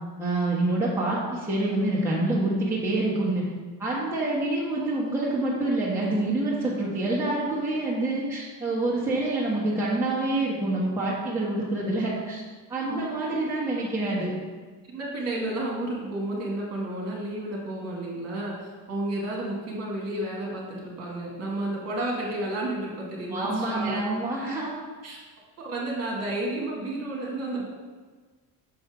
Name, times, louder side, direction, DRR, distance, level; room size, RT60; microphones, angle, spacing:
voice 1, 0.2-3.5 3.8-12.4 12.7-14.4 23.3-24.7, right 2 dB, 5° right, -7 dB, 1.1 m, -27 dB
voice 2, 14.9-24.1 25.0-25.2 25.6-27.7, right 1 dB, 40° right, -3 dB, 1.9 m, -31 dB
6.6 x 5.3 x 4.9 m, 1.4 s
cardioid pair, 175°, 38 cm